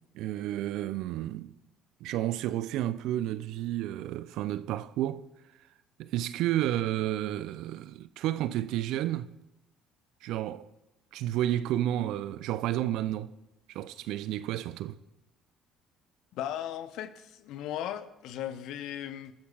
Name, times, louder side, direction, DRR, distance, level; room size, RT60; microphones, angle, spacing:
voice 1, 0.1-1.6 2.0-5.3 6.0-9.3 10.2-10.7 11.1-13.3 13.7-15.0, right 13 dB, 65° right, 0.5 m, -31 dB
voice 2, 16.3-19.3, left 11 dB, 65° left, 0.9 m, -37 dB
27.5 x 13.5 x 2.4 m
hypercardioid pair, 55°, 0 cm